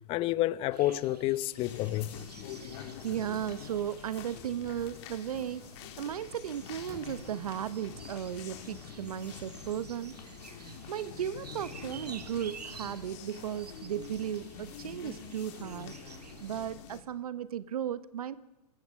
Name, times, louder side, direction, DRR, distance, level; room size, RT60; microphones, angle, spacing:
voice 1, 0.1-2.1, left 16 dB, 30° left, 0.8 m, -29 dB
sound 1, 0.7-16.7, right 6 dB, 85° right, 1.9 m, -51 dB
sound 2, 1.6-17.0, left 9 dB, 45° left, 3.2 m, -46 dB
voice 2, 2.6-5.7 6.0-10.2 10.9-15.9 16.4-18.4, right 10 dB, 70° right, 1.1 m, -36 dB
sound 3, 5.3-6.3 6.6-8.0, right 3 dB, 15° right, 4.4 m, -57 dB
24.0 x 21.0 x 6.5 m
hypercardioid pair, 125°, 20 cm